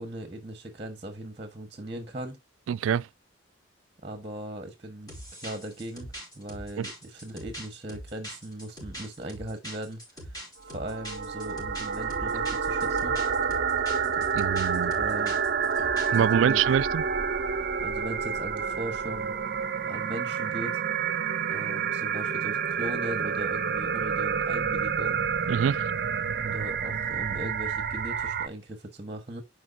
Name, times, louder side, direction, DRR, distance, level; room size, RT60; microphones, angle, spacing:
voice 1, 0.0-2.4 4.0-13.2 14.9-15.4 16.1-16.6 17.8-19.4 19.9-20.8 21.5-25.2 26.4-29.4, right 1 dB, 30° right, 1.3 m, -39 dB
voice 2, 2.7-3.1 6.8-6.9 14.3-14.9 16.1-17.0 25.5-25.8, right 8 dB, 85° right, 0.3 m, -25 dB
sound 1, 5.1-16.2, equal, 20° left, 4.7 m, -42 dB
sound 2, 10.6-28.5, right 6 dB, 50° right, 0.6 m, -29 dB
11.0 x 4.9 x 2.7 m
head